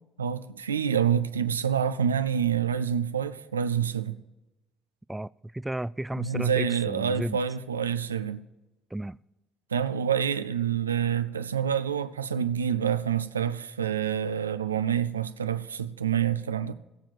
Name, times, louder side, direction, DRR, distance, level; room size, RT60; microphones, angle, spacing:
voice 1, 0.2-4.2 6.2-8.4 9.7-16.7, right 8 dB, 90° right, 0.4 m, -27 dB
voice 2, 5.1-7.4 8.9-9.2, right 1 dB, 10° right, 0.3 m, -33 dB
17.5 x 7.3 x 4.6 m
hypercardioid pair, 55°, 0 cm